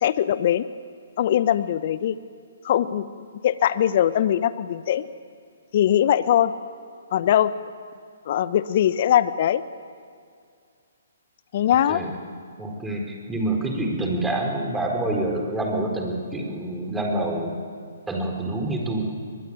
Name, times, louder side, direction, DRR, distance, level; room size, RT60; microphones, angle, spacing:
voice 1, 0.0-0.7 1.2-2.1 2.6-5.1 5.7-6.5 7.1-7.5 8.3-9.6 11.5-12.0, left 11 dB, 50° left, 15 dB, 0.9 m, -21 dB
voice 2, 11.7-12.1 12.6-17.5 18.1-19.0, right 1 dB, 10° right, 0 dB, 4.4 m, -27 dB
22.5 x 21.0 x 9.1 m, 2.2 s
figure-of-eight pair, 135°, 0 cm